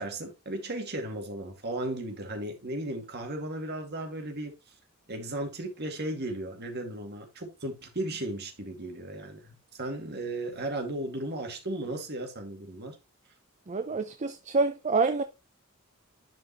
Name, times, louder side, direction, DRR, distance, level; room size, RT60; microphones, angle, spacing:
voice 1, 0.0-4.5 5.1-13.0, right 1 dB, 50° right, 2.2 m, -35 dB
voice 2, 13.7-15.2, right 3 dB, 35° right, 0.5 m, -27 dB
11.0 x 5.2 x 3.0 m
head